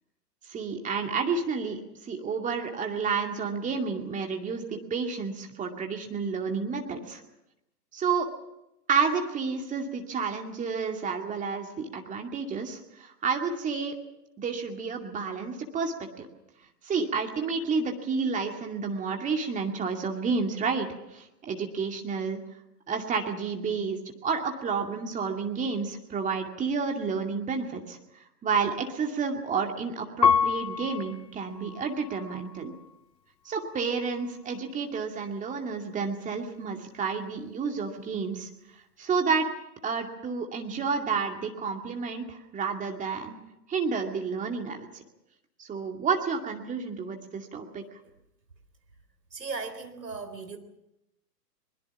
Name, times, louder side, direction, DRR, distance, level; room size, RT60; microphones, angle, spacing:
voice 1, 0.5-7.2 7.9-8.3 8.9-13.9 14.4-16.3 16.8-22.4 22.9-28.0 28.4-32.7 33.4-38.5 39.0-39.5 39.8-43.4 43.7-45.0 45.6-47.8, right 5 dB, 15° right, 3 dB, 2.3 m, -30 dB
Piano, 30.2-33.0 33.6-34.3, left 7 dB, 90° left, 0.8 m, -29 dB
voice 2, 49.3-50.6, right 4 dB, 75° right, 8 dB, 4.0 m, -37 dB
23.0 x 21.0 x 7.2 m, 0.88 s
figure-of-eight pair, 115°, 49 cm